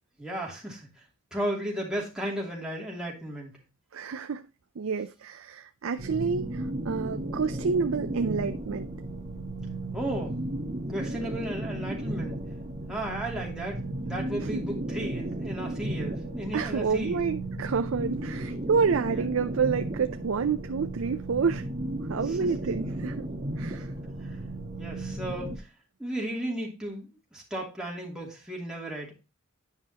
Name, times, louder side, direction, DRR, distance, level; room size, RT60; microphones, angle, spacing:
voice 1, 0.2-0.9 1.3-3.5 9.9-10.4 10.9-12.4 12.9-17.2 19.1-19.2 22.3-22.5 24.2-24.4 24.8-25.7 26.0-29.1, right 1 dB, 5° right, 2.7 m, -34 dB
voice 2, 3.9-4.4 4.8-8.9 14.4-14.6 16.5-21.7 22.1-23.2 23.6-23.9, right 5 dB, 75° right, 0.5 m, -29 dB
sound 1, 6.0-25.6, right 1 dB, 35° right, 1.4 m, -34 dB
9.8 x 5.6 x 2.8 m
head